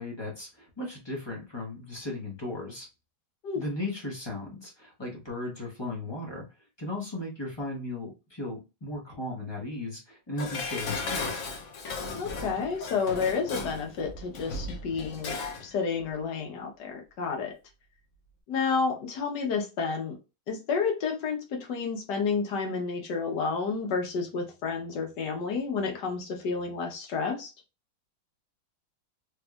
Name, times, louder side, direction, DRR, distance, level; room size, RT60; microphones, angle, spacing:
voice 1, 0.0-2.9 3.5-6.4 6.8-11.4, left 2 dB, 25° left, -3 dB, 0.5 m, -36 dB
Dishes pots and pans, 10.4-15.7 16.0-16.1, left 3 dB, 80° left, 0.6 m, -36 dB
voice 2, 12.1-15.3 15.6-17.5 18.5-20.2 20.5-27.5, left 5 dB, 60° left, 2 dB, 1.4 m, -30 dB
3.5 x 3.2 x 2.3 m, 0.29 s
omnidirectional pair, 2.3 m